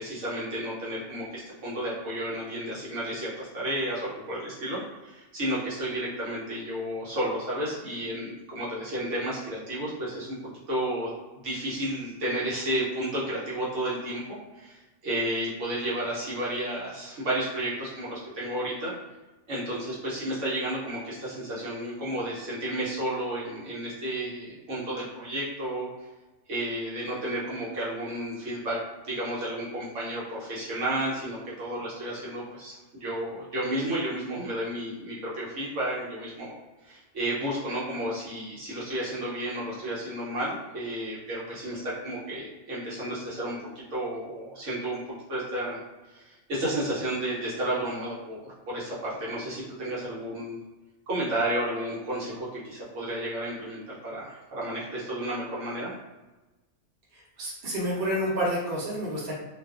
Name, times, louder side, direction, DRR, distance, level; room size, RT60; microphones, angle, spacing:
voice 1, 0.0-10.4 10.7-11.1 11.4-18.9 19.5-25.9 26.5-28.8 29.0-36.6 36.8-45.8 46.1-50.6 51.1-55.9, right 1 dB, 65° right, -7 dB, 1.1 m, -32 dB
voice 2, 57.1-59.3, equal, 50° right, -6 dB, 0.9 m, -29 dB
2.4 x 2.3 x 2.4 m, 1.1 s
omnidirectional pair, 1.4 m